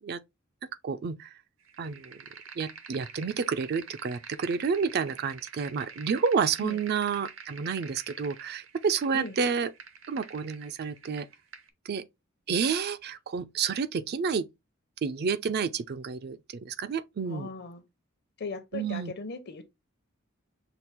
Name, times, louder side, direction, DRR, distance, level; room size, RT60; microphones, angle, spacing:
voice 1, 0.8-1.3 1.8-2.1 2.6-9.7 10.1-11.3 11.9-12.0 12.5-14.5 15.0-17.5 18.7-19.1, right 6 dB, 50° right, 0.4 m, -30 dB
sound 1, 1.7-11.7, right 6 dB, 70° right, 0.8 m, -47 dB
voice 2, 17.3-17.8 18.4-19.7, left 3 dB, 55° left, 0.8 m, -38 dB
5.9 x 2.4 x 3.4 m
head